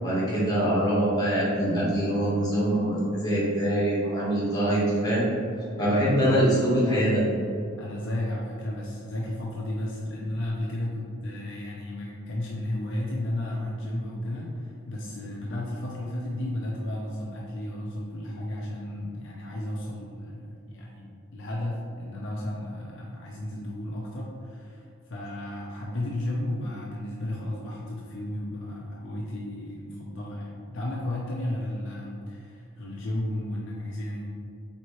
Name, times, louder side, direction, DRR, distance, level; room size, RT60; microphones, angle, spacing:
voice 1, 0.0-5.3 5.8-7.2, right 1 dB, 20° left, -8 dB, 1.2 m, -24 dB
voice 2, 5.8-6.2 7.8-34.2, left 1 dB, 60° left, -4 dB, 0.6 m, -33 dB
4.3 x 3.6 x 3.1 m, 2.5 s
head